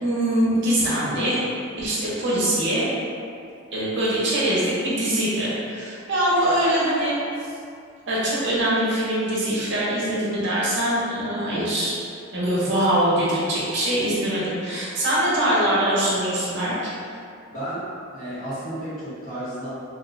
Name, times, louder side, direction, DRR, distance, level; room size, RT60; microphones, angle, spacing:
voice 1, 0.0-1.4 1.7-2.9 3.7-7.2 8.1-12.0 12.3-16.9, right 1 dB, 60° right, -8 dB, 0.7 m, -23 dB
voice 2, 17.5-19.7, right 1 dB, 40° left, -14 dB, 0.8 m, -32 dB
2.4 x 2.1 x 2.5 m, 2.4 s
head